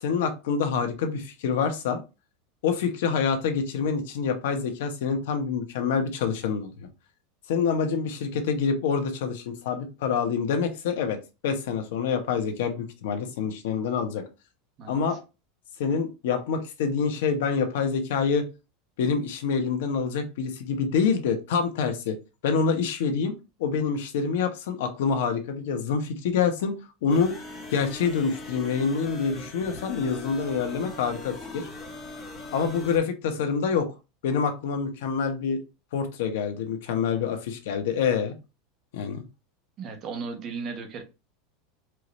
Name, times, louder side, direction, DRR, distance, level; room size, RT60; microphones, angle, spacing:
voice 1, 0.0-2.0 2.6-6.9 7.5-14.2 14.9-15.2 15.8-18.4 19.0-22.2 22.4-23.3 23.6-26.7 27.0-27.3 27.7-31.7 32.5-33.9 34.2-35.6 35.9-38.3 38.9-39.2, left 6 dB, 75° left, 6 dB, 1.0 m, -26 dB
voice 2, 14.8-15.2 39.8-41.0, right 5 dB, 30° right, 4 dB, 1.1 m, -36 dB
sound 1, 27.1-33.0, left 2 dB, 20° left, 1.3 m, -40 dB
4.5 x 2.6 x 3.2 m, 0.27 s
supercardioid pair, 160°, 0 cm